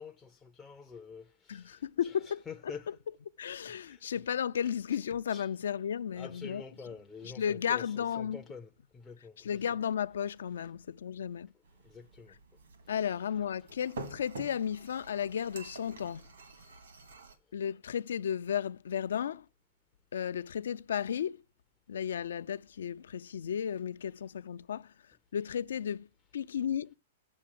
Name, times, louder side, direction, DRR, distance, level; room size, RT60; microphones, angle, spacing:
voice 1, 0.0-1.8 2.5-2.9 3.9-4.0 5.3-5.5 6.2-9.4 11.9-12.3, left 5 dB, 10° left, 0.4 m, -47 dB
voice 2, 1.5-2.9 3.4-6.6 7.2-8.4 9.4-11.5 12.9-16.2 17.5-19.4 20.1-21.4 21.9-24.9 25.3-26.1 26.3-27.0, left 8 dB, 80° left, 0.5 m, -34 dB
sound 1, 11.6-17.4, right 2 dB, 90° right, 2.2 m, -48 dB
7.7 x 7.2 x 7.4 m
hypercardioid pair, 165°, 0 cm